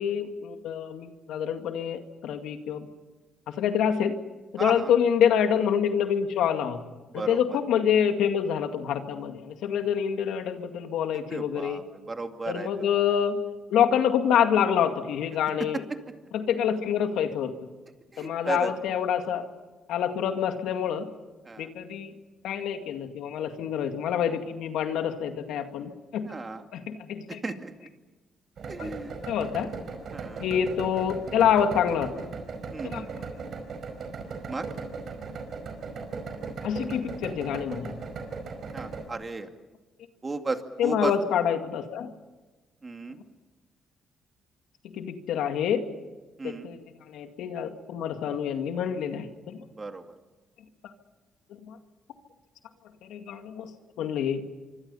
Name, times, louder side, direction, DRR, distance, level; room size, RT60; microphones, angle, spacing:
voice 1, 0.0-2.9 3.5-4.1 4.5-6.8 7.1-11.8 12.5-13.4 13.7-15.8 16.3-17.5 18.2-19.5 19.9-21.1 21.6-22.1 22.4-26.3 26.7-27.4 28.8-29.7 30.4-32.1 32.8-33.1 36.6-38.0 40.8-42.1 44.9-45.9 46.4-46.8 47.1-49.6 51.5-51.8 53.0-53.7 54.0-54.4, left 8 dB, 85° left, 6 dB, 2.1 m, -27 dB
voice 2, 4.6-4.9 7.1-7.6 11.3-12.7 18.1-18.7 21.5-21.7 26.2-26.6 27.3-27.7 28.7-29.1 30.1-30.5 32.7-33.1 34.5-34.7 38.7-39.5 40.2-41.1 42.8-43.2 46.4-46.7 49.8-50.0, right 3 dB, 30° right, 6 dB, 2.3 m, -34 dB
sound 1, 28.6-39.1, right 4 dB, 60° right, 4.8 m, -37 dB
26.0 x 24.5 x 5.6 m, 1.2 s
cardioid pair, 90°, 0 cm